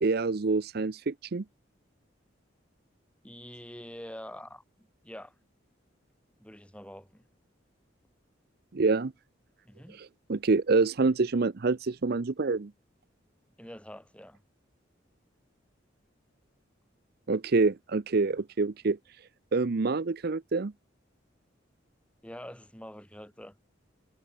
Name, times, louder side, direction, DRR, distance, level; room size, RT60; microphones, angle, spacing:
voice 1, 0.0-1.4 8.7-9.1 10.0-12.7 17.3-19.0 19.5-20.7, right 3 dB, 55° right, 0.6 m, -26 dB
voice 2, 3.2-5.3 6.4-7.2 9.7-10.0 13.6-14.4 22.2-23.5, equal, 5° left, 7.0 m, -45 dB
head